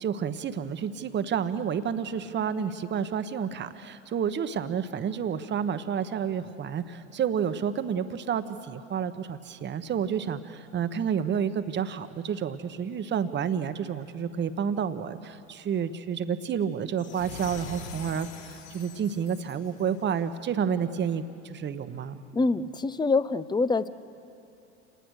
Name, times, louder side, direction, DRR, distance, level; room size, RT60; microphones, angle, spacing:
voice 1, 0.0-22.2, right 7 dB, 30° right, 11 dB, 1.1 m, -30 dB
sound 1, 17.0-20.3, left 5 dB, 65° left, 3.1 m, -43 dB
voice 2, 22.3-23.9, left 3 dB, 10° left, 16 dB, 0.6 m, -25 dB
28.0 x 19.0 x 6.5 m, 2.7 s
hypercardioid pair, 85°, 37 cm